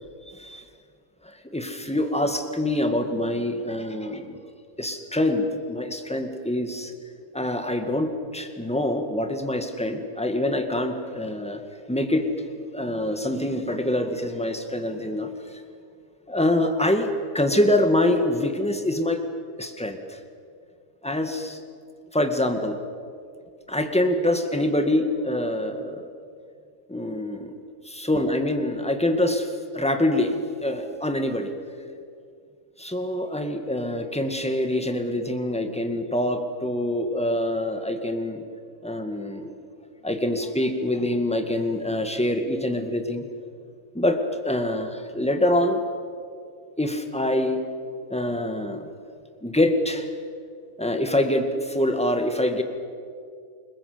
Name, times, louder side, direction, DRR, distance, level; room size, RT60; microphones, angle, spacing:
voice 1, 0.3-0.6 1.2-4.4 4.8-6.9 7.3-11.6 11.9-12.3 12.7-15.6 16.3-19.2 19.6-20.2 21.0-21.6 22.1-22.8 23.7-26.1 26.9-27.6 27.9-30.4 30.6-31.5 32.8-38.4 38.8-39.5 40.0-43.3 43.9-45.8 46.8-47.6 48.1-48.9 49.4-50.1 50.8-52.6, left 1 dB, 5° left, 6 dB, 1.9 m, -25 dB
28.5 x 21.0 x 8.0 m, 2.3 s
omnidirectional pair, 1.5 m